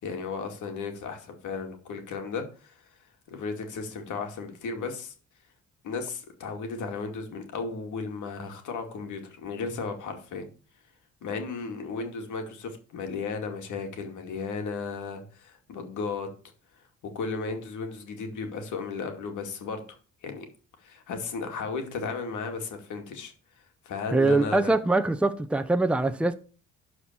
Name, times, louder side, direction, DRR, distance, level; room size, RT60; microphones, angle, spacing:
voice 1, 0.0-2.8 3.3-5.1 5.8-10.5 11.2-16.3 16.7-16.8 17.1-19.8 20.2-20.5 20.8-24.7, left 4 dB, 75° left, 2.4 m, -35 dB
voice 2, 24.1-26.3, right 2 dB, 5° right, 0.8 m, -23 dB
12.0 x 4.4 x 7.1 m
cardioid pair, 90°, 30 cm